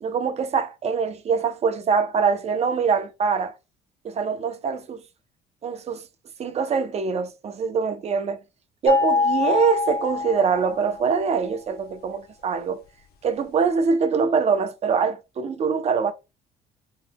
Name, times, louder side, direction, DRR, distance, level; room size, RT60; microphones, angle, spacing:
voice 1, 0.0-3.5 4.0-5.0 5.6-6.1 6.4-8.4 8.8-12.8 13.2-16.1, right 5 dB, 40° right, 0.6 m, -24 dB
sound 1, 8.9-11.1, left 4 dB, 65° left, 0.8 m, -24 dB
3.8 x 2.8 x 2.2 m
cardioid pair, 110°, 17 cm